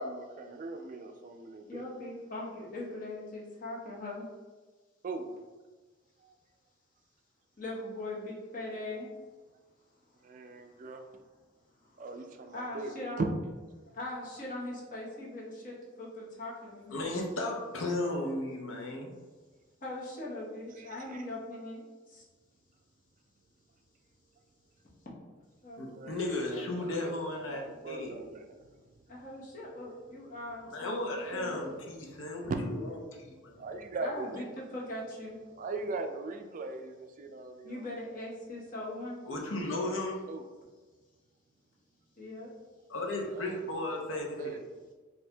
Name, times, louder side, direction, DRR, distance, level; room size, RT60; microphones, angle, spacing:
voice 1, 0.0-1.8 5.0-5.3 6.2-6.4 10.2-11.0 12.0-13.3 20.8-21.2 25.8-29.2 32.1-32.6 33.3-34.5 35.5-37.9 40.3-40.4 43.1-44.6, right 3 dB, 40° right, 5 dB, 0.3 m, -40 dB
voice 2, 1.7-4.2 7.6-9.1 11.8-11.9 12.5-13.2 13.9-16.9 19.8-21.8 22.1-22.2 25.6-25.9 29.1-31.0 31.3-31.6 34.0-35.3 37.6-39.2 42.2-42.5, left 1 dB, 45° left, -5 dB, 0.9 m, -40 dB
voice 3, 16.9-19.1 25.8-28.1 30.7-32.5 32.8-32.9 33.4-33.5 39.3-40.2 42.9-44.6, left 2 dB, 75° left, 1 dB, 0.7 m, -35 dB
4.3 x 2.7 x 2.2 m, 1.3 s
head